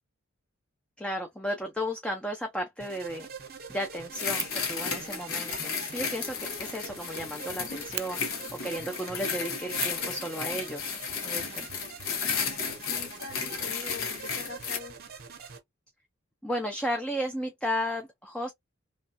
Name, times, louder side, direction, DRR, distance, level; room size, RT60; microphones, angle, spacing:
voice 1, 1.0-3.3 3.7-11.0 11.2-11.7 16.4-18.5, equal, 5° left, 0.5 m, -34 dB
sound 1, 2.8-15.6, right 5 dB, 45° right, 0.8 m, -45 dB
sound 2, 4.1-14.8, left 6 dB, 80° left, 1.0 m, -34 dB
Fire, 4.3-4.6 5.4-7.2 7.5-7.6 7.9-8.1 9.7-10.1 11.5-12.4 12.6-12.7 13.0-13.1, right 16 dB, 75° right, 0.4 m, -40 dB
voice 2, 12.1-15.0, left 4 dB, 55° left, 1.4 m, -44 dB
3.1 x 2.3 x 2.6 m
head